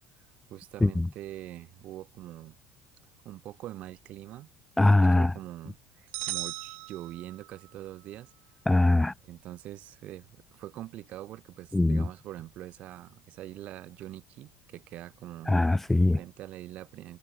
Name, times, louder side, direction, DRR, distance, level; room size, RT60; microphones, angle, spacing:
voice 1, 0.5-2.6 3.2-4.5 4.9-8.3 9.2-15.6 16.1-17.2, right 14 dB, 55° right, 3.7 m, -43 dB
voice 2, 4.8-5.3 8.7-9.1 11.7-12.0 15.5-16.2, left 2 dB, 10° left, 0.4 m, -21 dB
sound 1, 6.1-7.7, right 25 dB, 70° right, 1.0 m, -37 dB
supercardioid pair, 115°, 3 cm